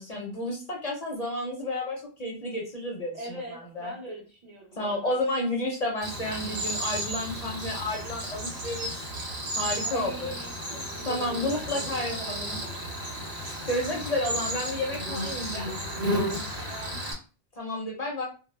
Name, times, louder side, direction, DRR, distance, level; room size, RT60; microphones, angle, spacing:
voice 1, 0.0-3.9 4.8-9.0 9.5-10.4 11.1-12.6 13.7-15.7 17.6-18.2, left 1 dB, 45° left, -2 dB, 0.6 m, -31 dB
voice 2, 3.1-5.3 9.8-12.7 16.6-17.0, right 2 dB, 50° right, -2 dB, 0.5 m, -42 dB
Cricket, 6.0-17.1, equal, 90° right, 0.9 m, -33 dB
2.0 x 2.0 x 3.1 m, 0.35 s
omnidirectional pair, 1.1 m